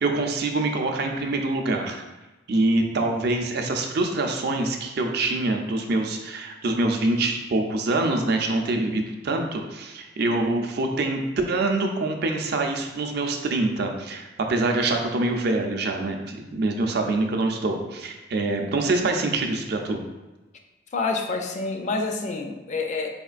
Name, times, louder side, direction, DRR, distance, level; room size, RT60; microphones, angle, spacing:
voice 1, 0.0-2.0 2.5-11.2 11.5-20.0, right 2 dB, 60° right, 3 dB, 0.5 m, -25 dB
voice 2, 20.9-23.1, left 3 dB, 40° left, 4 dB, 0.4 m, -27 dB
4.2 x 3.0 x 2.4 m, 1.1 s
head